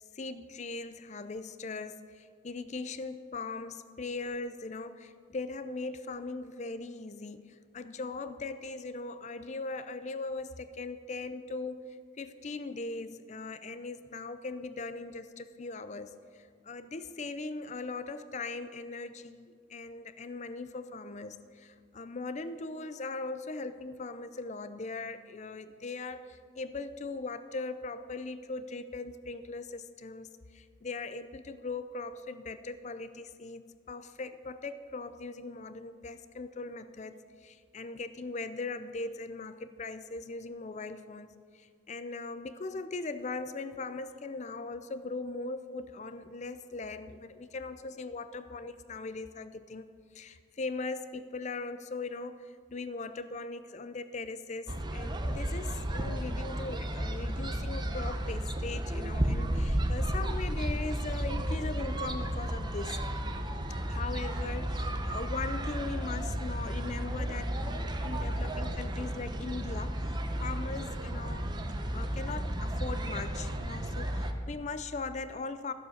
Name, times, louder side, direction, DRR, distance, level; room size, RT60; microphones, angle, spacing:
voice 1, 0.1-49.8 50.1-63.0 63.8-71.5 71.9-75.7, left 3 dB, 35° left, 12 dB, 0.5 m, -39 dB
sound 1, 54.7-74.3, right 1 dB, 20° right, 0.7 m, -33 dB
13.5 x 7.3 x 6.6 m, 2.1 s
head